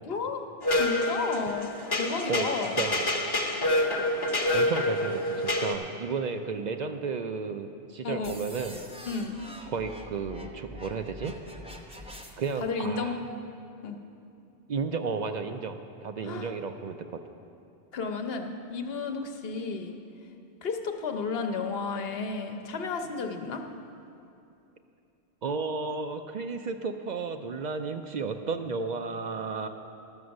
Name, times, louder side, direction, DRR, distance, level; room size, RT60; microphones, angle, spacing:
voice 1, 0.1-2.9 8.0-8.4 9.1-9.4 12.6-13.2 13.8-14.0 16.2-16.5 17.9-19.9 20.6-23.6, left 4 dB, 65° left, 5 dB, 1.0 m, -32 dB
sound 1, 0.6-5.7, left 1 dB, 25° left, 0.8 m, -27 dB
voice 2, 4.5-8.8 9.7-11.3 12.4-13.2 14.7-17.2 25.4-29.7, right 5 dB, 55° right, 7 dB, 0.5 m, -33 dB
sound 2, 8.2-12.6, left 1 dB, 5° right, 0.6 m, -45 dB
12.5 x 6.9 x 6.4 m, 2.7 s
omnidirectional pair, 1.1 m